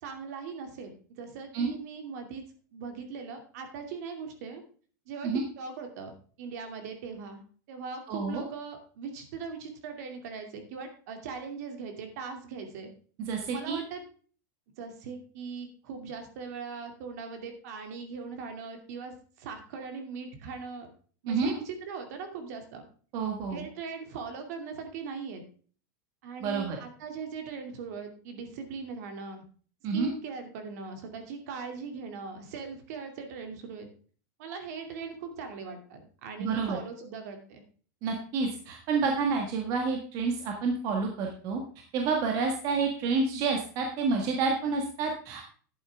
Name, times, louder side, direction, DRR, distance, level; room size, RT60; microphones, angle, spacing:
voice 1, 0.0-2.4 2.7-4.6 5.1-6.1 6.4-7.4 7.7-12.9 13.5-14.0 14.8-20.9 21.2-22.9 23.5-25.4 26.2-29.4 29.9-33.9 34.4-37.6, right 5 dB, 60° right, 5 dB, 2.5 m, -40 dB
voice 2, 8.1-8.4 13.2-13.8 21.3-21.5 23.1-23.7 26.4-26.8 29.8-30.1 36.4-36.8 38.0-41.6 41.9-45.4, right 4 dB, 35° right, 2 dB, 1.6 m, -29 dB
11.0 x 8.6 x 3.5 m, 0.42 s
supercardioid pair, 175°, 10 cm